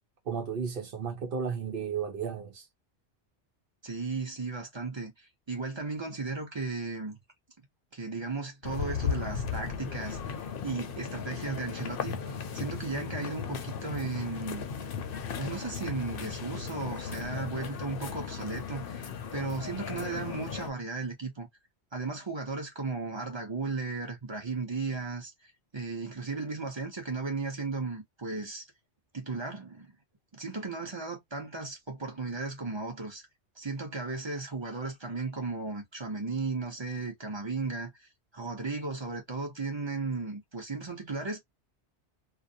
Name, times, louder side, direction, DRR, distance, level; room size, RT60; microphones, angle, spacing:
voice 1, 0.3-2.7, right 6 dB, 55° right, 0.8 m, -33 dB
voice 2, 3.8-7.2 7.9-14.7 15.4-21.5 21.9-28.6 29.1-30.0 30.3-33.2 33.6-38.1 38.3-41.4, right 3 dB, 30° right, 0.7 m, -35 dB
sound 1, 8.6-20.7, left 6 dB, 60° left, 0.7 m, -36 dB
2.5 x 2.0 x 2.6 m
omnidirectional pair, 1.2 m